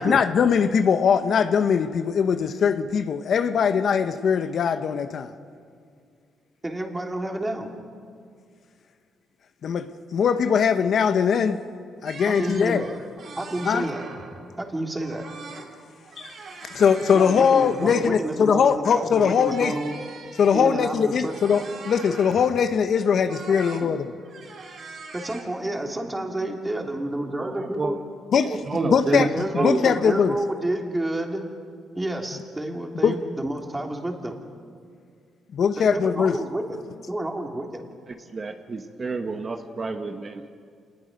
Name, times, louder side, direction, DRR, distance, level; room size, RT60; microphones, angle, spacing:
voice 1, 0.0-5.3 9.6-11.6 12.0-12.8 13.6-13.9 16.2-16.3 16.7-19.7 20.4-24.1 28.3-28.6 28.8-30.4 33.0-33.1 35.5-36.4, left 6 dB, 60° left, 1.0 m, -21 dB
voice 2, 6.6-7.7 12.2-12.9 13.3-14.0 14.6-15.3 17.1-20.0 20.5-21.3 25.1-28.0 29.2-31.6 31.9-34.4 35.8-36.8 37.1-37.9, right 1 dB, 15° right, 2.9 m, -30 dB
sound 1, 12.1-14.5 15.0-15.7 16.0-18.2 19.3-22.6 23.3-23.9 24.2-25.4, right 4 dB, 60° right, 3.9 m, -42 dB
voice 3, 27.4-28.0 28.4-29.9 38.1-40.5, right 3 dB, 35° right, 1.2 m, -29 dB
27.0 x 20.5 x 5.3 m
cardioid pair, 90°, 0 cm